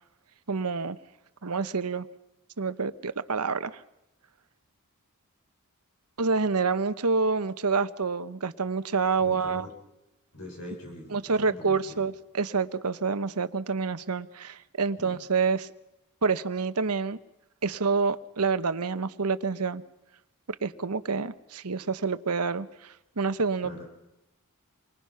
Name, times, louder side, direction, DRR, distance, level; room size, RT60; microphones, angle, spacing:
voice 1, 0.5-1.0 1.4-2.1 2.6-3.8 6.2-9.7 11.1-15.7 16.2-17.2 17.6-19.8 20.6-23.9, right 4 dB, 90° right, 13 dB, 1.1 m, -28 dB
voice 2, 9.2-9.7 10.3-12.1 15.0-15.2 23.6-23.9, left 1 dB, 75° left, 1 dB, 6.2 m, -43 dB
28.5 x 24.5 x 5.8 m, 0.92 s
head